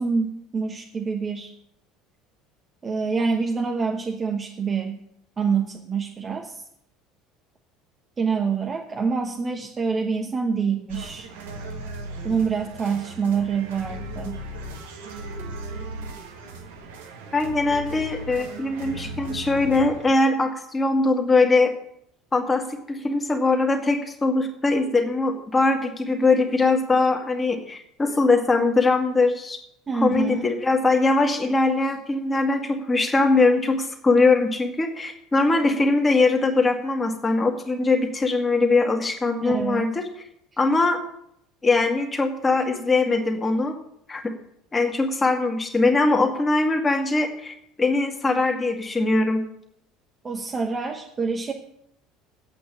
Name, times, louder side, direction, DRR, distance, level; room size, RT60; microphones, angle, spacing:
voice 1, 0.0-1.5 2.8-5.0 5.4-6.6 8.2-11.3 12.2-14.4 29.9-30.5 39.4-39.9 50.2-51.5, right 5 dB, 25° right, 2 dB, 1.1 m, -26 dB
sound 1, 10.9-20.1, right 2 dB, 70° right, 1.5 m, -37 dB
voice 2, 17.3-21.7 22.3-29.6 29.9-40.0 40.6-41.0 41.6-43.7 44.1-44.3 44.7-49.4, left 3 dB, 20° left, 2 dB, 2.2 m, -21 dB
9.0 x 8.4 x 7.4 m, 0.74 s
figure-of-eight pair, 65°, 0 cm